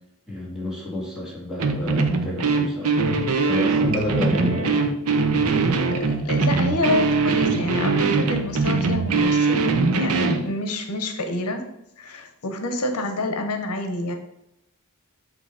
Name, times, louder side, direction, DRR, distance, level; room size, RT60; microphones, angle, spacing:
voice 1, 0.3-5.0, left 1 dB, ahead, -6 dB, 2.0 m, -30 dB
sound 1, 1.6-10.5, right 4 dB, 75° right, 0.7 m, -21 dB
voice 2, 6.0-9.6 9.9-11.7 12.0-14.1, left 1 dB, 80° left, 5 dB, 0.8 m, -27 dB
7.9 x 2.8 x 4.9 m, 0.83 s
head